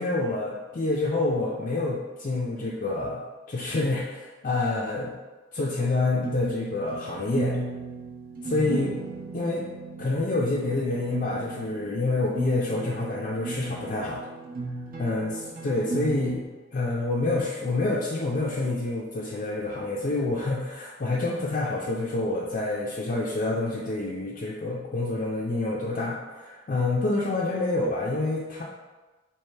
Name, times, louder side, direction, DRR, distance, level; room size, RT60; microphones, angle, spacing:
voice 1, 0.0-3.2 3.5-5.1 5.5-7.6 8.4-9.0 9.3-9.7 10.0-14.2 15.0-16.4 16.7-28.6, left 2 dB, 45° left, -4 dB, 0.4 m, -27 dB
sound 1, 6.2-16.4, right 3 dB, 45° right, 0.7 m, -35 dB
3.2 x 2.9 x 4.4 m, 1.2 s
head